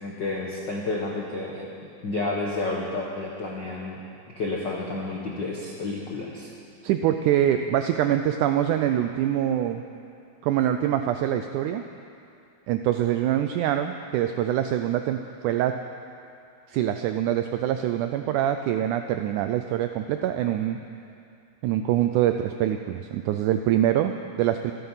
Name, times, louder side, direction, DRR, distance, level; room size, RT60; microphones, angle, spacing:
voice 1, 0.0-1.7 2.0-4.0 4.3-6.5, left 2 dB, 70° left, -2 dB, 1.0 m, -30 dB
voice 2, 6.8-9.8 10.4-11.8 12.7-15.2 15.4-15.7 16.7-20.8 21.6-24.7, right 11 dB, 85° right, 7 dB, 1.8 m, -24 dB
25.5 x 9.3 x 5.6 m, 2.6 s
omnidirectional pair, 4.1 m